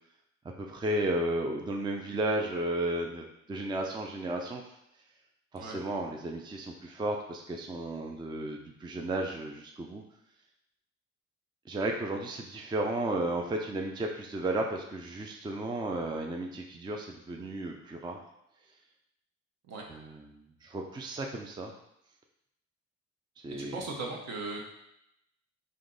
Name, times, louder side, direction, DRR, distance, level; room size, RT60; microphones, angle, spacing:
voice 1, 0.6-4.6 5.5-10.0 11.7-18.2 19.9-21.7 23.4-23.8, right 1 dB, 15° right, 2 dB, 0.4 m, -33 dB
voice 2, 23.6-24.7, right 3 dB, 60° right, 0 dB, 1.0 m, -37 dB
3.6 x 2.8 x 3.9 m, 0.80 s
cardioid pair, 90°, 30 cm